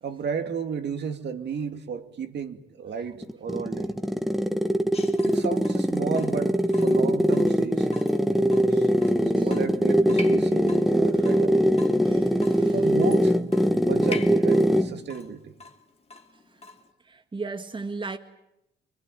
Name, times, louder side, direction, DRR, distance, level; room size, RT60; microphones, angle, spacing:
voice 1, 0.0-3.9 5.2-7.9 8.7-8.9 9.2-11.6 12.7-13.4 13.8-15.5, right 6 dB, 60° right, 2.4 m, -33 dB
sound 1, 3.2-15.0, equal, ahead, 1.5 m, -22 dB
Water tap faucet / Drip, 4.9-16.9, left 3 dB, 30° left, 2.5 m, -45 dB
voice 2, 12.0-12.7 17.1-18.2, right 3 dB, 25° right, 1.7 m, -36 dB
25.5 x 22.0 x 9.2 m
cardioid pair, 90°, 20 cm